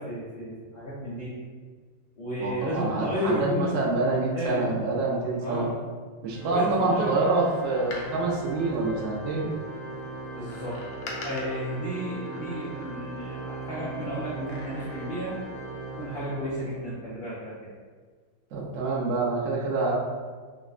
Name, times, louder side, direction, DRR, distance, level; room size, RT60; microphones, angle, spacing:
voice 1, 0.0-1.3 2.2-3.7 4.3-4.8 5.4-5.7 6.5-7.2 10.3-10.8 11.2-15.4 16.0-17.7, equal, 60° left, -11 dB, 0.6 m, -32 dB
voice 2, 2.4-5.7 6.2-9.5 18.5-20.0, right 3 dB, 85° right, -3 dB, 0.6 m, -26 dB
Organ, 6.3-17.0, right 2 dB, 50° right, 0.9 m, -39 dB
Door, 7.7-9.5 10.5-13.3 14.3-15.4 15.7-15.8, left 2 dB, 85° left, 1.4 m, -44 dB
4.9 x 2.1 x 2.4 m, 1.5 s
omnidirectional pair, 2.0 m